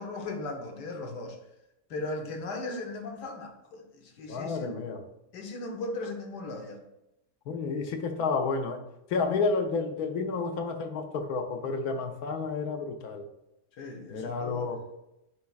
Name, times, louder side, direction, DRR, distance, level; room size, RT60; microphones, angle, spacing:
voice 1, 0.0-1.4 1.9-4.8 5.3-6.8 13.8-14.7, left 2 dB, 90° left, 3 dB, 1.6 m, -37 dB
voice 2, 4.3-5.0 7.5-8.8 9.1-13.3 14.1-14.8, left 4 dB, 70° left, 5 dB, 1.2 m, -30 dB
9.3 x 4.7 x 2.4 m, 0.88 s
omnidirectional pair, 1.7 m